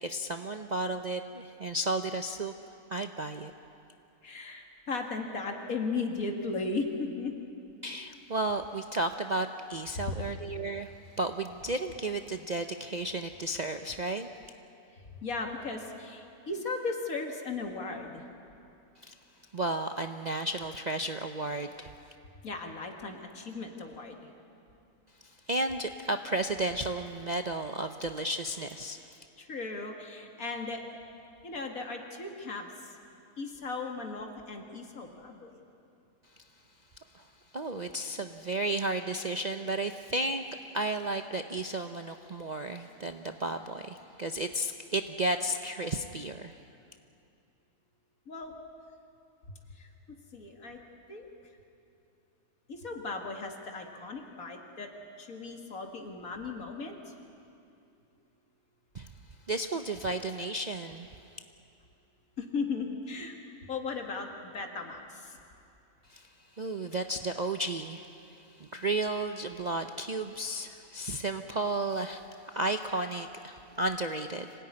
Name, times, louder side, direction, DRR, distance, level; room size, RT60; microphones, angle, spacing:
voice 1, 0.0-2.5 2.9-3.5 7.8-10.9 11.2-14.3 19.0-19.1 19.5-21.9 25.5-29.0 37.1-37.2 37.5-40.4 40.7-46.5 58.9-59.1 59.5-61.1 66.1-66.2 66.6-68.1 68.6-72.2 72.5-74.5, right 2 dB, 40° right, 6 dB, 0.6 m, -33 dB
voice 2, 4.2-7.3 10.0-10.2 15.1-18.2 22.4-24.2 29.4-30.8 31.4-33.0 33.4-35.6 48.3-48.5 49.8-50.8 51.1-51.3 52.7-54.9 55.2-57.0 62.4-63.4 63.7-65.4, left 3 dB, 65° left, 3 dB, 2.5 m, -36 dB
26.0 x 17.5 x 9.8 m, 2.6 s
omnidirectional pair, 1.6 m